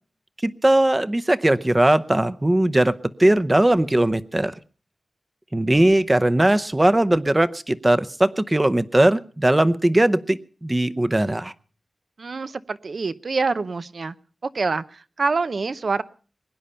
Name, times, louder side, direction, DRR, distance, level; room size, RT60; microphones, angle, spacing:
voice 1, 0.4-2.9 3.2-4.5 5.5-11.5, right 1 dB, 20° right, 13 dB, 0.7 m, -19 dB
voice 2, 12.2-14.1 14.5-16.0, right 4 dB, 60° right, 13 dB, 0.7 m, -26 dB
22.0 x 10.0 x 5.6 m, 0.42 s
wide cardioid pair, 85°, 0 cm